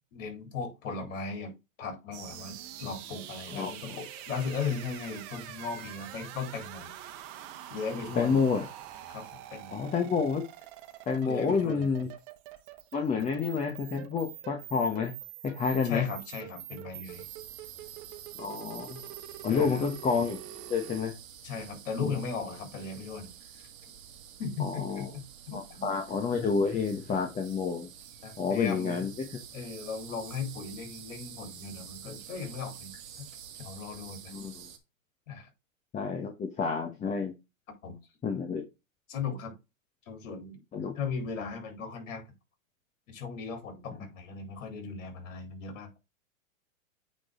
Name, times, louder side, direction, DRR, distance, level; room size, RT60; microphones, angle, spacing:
voice 1, 0.1-1.5 1.8-6.9 7.7-8.4 9.1-9.8 11.2-11.9 13.1-13.3 15.8-17.3 19.5-19.8 21.4-23.3 24.4-25.9 28.2-29.1 29.5-33.2 33.6-34.3 35.3-35.5 37.8-38.0 39.1-39.5 40.1-40.6 41.0-42.3 43.1-46.0, left 5 dB, 65° left, 3.9 m, -37 dB
sound 1, 2.1-21.0, right 12 dB, 40° right, 1.5 m, -45 dB
voice 2, 8.2-8.6 9.7-10.4 11.1-12.1 12.9-15.1 15.4-16.0 18.4-19.0 19.4-20.4 20.7-21.1 22.0-22.2 24.6-25.1 25.5-27.9 28.4-29.1 34.3-34.6 35.9-37.3 38.2-38.6 40.7-40.9, left 5 dB, 20° left, 1.2 m, -29 dB
sound 2, 17.0-34.8, right 8 dB, 70° right, 1.8 m, -49 dB
8.8 x 4.0 x 3.8 m
hypercardioid pair, 125°, 41 cm